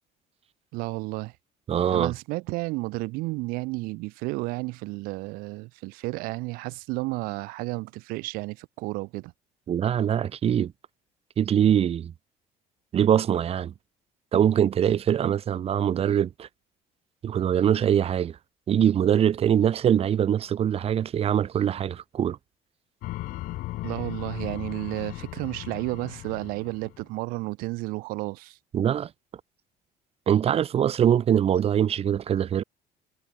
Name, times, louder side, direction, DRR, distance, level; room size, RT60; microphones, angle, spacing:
voice 1, 0.7-1.3 1.9-9.3 23.8-28.6, right 23 dB, 80° right, 0.5 m, -32 dB
voice 2, 1.7-2.1 9.7-10.7 11.4-12.1 12.9-13.7 14.3-16.5 17.2-18.4 18.7-22.4 28.7-29.1 30.3-32.6, right 9 dB, 40° right, 0.8 m, -23 dB
sound 1, 23.0-27.1, left 18 dB, 65° left, 0.4 m, -37 dB
cardioid pair, 95°, 15 cm